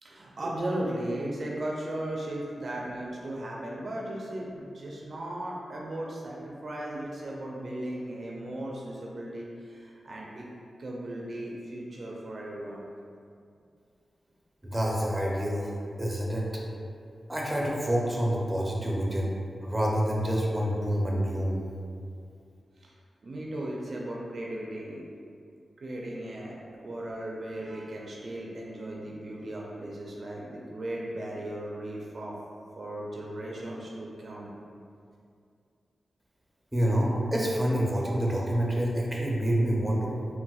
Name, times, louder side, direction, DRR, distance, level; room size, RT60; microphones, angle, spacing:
voice 1, 0.0-10.5 10.8-12.8 22.8-22.9 23.2-25.0 25.8-32.3 32.8-34.6, right 1 dB, 60° right, -3 dB, 0.4 m, -36 dB
voice 2, 14.7-15.7 16.0-16.5 17.3-19.3 19.6-21.6 36.7-40.1, equal, 15° right, -3 dB, 0.6 m, -27 dB
3.9 x 2.0 x 2.4 m, 2.4 s
cardioid pair, 55°, 0 cm